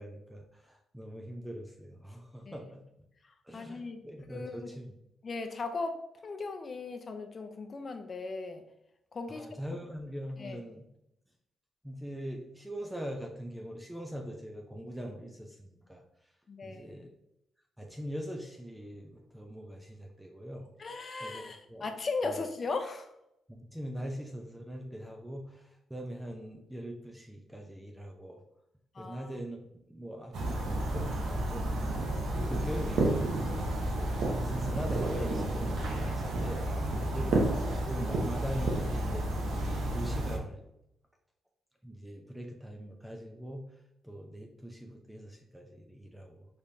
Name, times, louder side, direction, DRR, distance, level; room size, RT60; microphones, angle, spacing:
voice 1, 0.0-2.8 3.4-4.9 9.3-10.9 11.8-16.0 16.6-17.1 17.8-20.7 21.2-21.4 21.7-21.8 22.2-22.4 23.5-28.4 29.0-29.6 29.8-30.6 30.9-31.9 32.3-39.5 39.9-40.6 41.8-43.7 44.0-46.5, equal, 5° right, 1 dB, 0.7 m, -42 dB
voice 2, 3.2-4.0 4.3-4.7 5.2-8.6 9.1-9.8 10.4-10.6 16.5-17.1 20.8-23.1 28.9-29.3 37.0-37.3, left 3 dB, 45° left, 7 dB, 0.6 m, -38 dB
sound 1, 30.3-40.4, right 1 dB, 80° right, 0.9 m, -31 dB
5.0 x 3.3 x 2.7 m, 0.81 s
cardioid pair, 75°, 0 cm